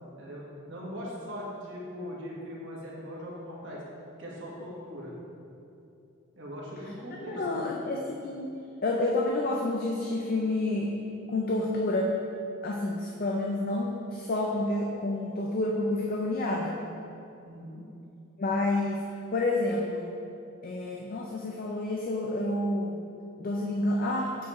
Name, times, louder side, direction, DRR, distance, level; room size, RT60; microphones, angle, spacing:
voice 1, 0.7-3.8 4.2-5.2 6.3-7.7 17.4-17.8, equal, 55° right, -5 dB, 1.4 m, -40 dB
voice 2, 7.2-8.5 8.8-10.9 11.3-12.2 12.6-16.8 18.4-19.0 19.3-20.1 20.6-23.0 23.4-24.4, left 2 dB, 40° left, 0 dB, 0.4 m, -29 dB
7.0 x 6.6 x 3.0 m, 2.7 s
head